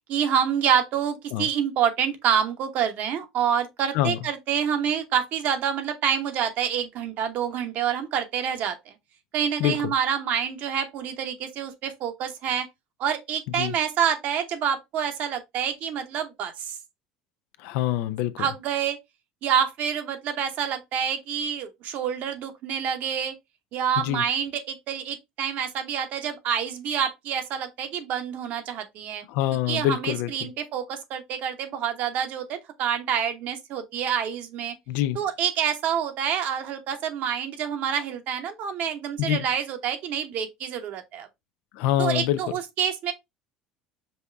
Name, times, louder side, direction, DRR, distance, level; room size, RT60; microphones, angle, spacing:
voice 1, 0.1-8.9 9.3-12.7 13.0-16.8 18.4-19.0 19.4-23.3 23.7-29.2 29.7-34.8 35.1-41.3 42.0-43.1, right 8 dB, 60° right, 1.0 m, -27 dB
voice 2, 9.6-9.9 13.5-13.7 17.6-18.5 24.0-24.2 29.3-30.5 34.9-35.2 39.2-39.4 41.7-42.4, left 13 dB, 70° left, 0.4 m, -25 dB
5.4 x 2.3 x 3.4 m
hypercardioid pair, 85°, 3 cm